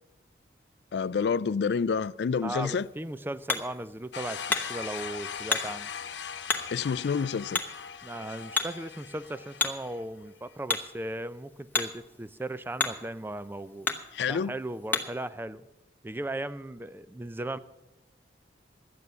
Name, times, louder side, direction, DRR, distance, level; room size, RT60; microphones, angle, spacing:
voice 1, 0.9-2.9 6.7-7.6 14.1-14.5, left 6 dB, 65° left, 0.4 m, -28 dB
voice 2, 2.4-5.9 8.0-13.9 14.3-15.6 16.0-17.6, right 1 dB, 10° right, 0.4 m, -37 dB
Hammer, 2.6-15.3, left 4 dB, 10° left, 0.9 m, -36 dB
sound 1, 4.1-10.0, left 7 dB, 85° left, 0.8 m, -40 dB
12.0 x 9.6 x 6.7 m
head